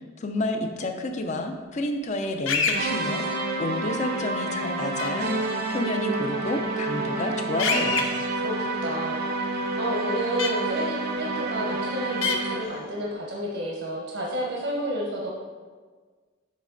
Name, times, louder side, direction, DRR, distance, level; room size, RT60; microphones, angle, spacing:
voice 1, 0.0-3.2 3.6-5.3 5.7-8.1, left 2 dB, 40° left, 5 dB, 0.5 m, -30 dB
sound 1, 2.5-2.8 5.0-5.1 7.6-8.0 10.4-10.5 12.2-12.4, left 5 dB, 85° left, 0.6 m, -24 dB
sound 2, 2.7-12.8, right 2 dB, 55° right, 0.6 m, -29 dB
voice 2, 8.3-9.3 9.8-15.3, right 1 dB, 80° right, -2 dB, 1.0 m, -31 dB
8.4 x 3.2 x 3.8 m, 1.5 s
head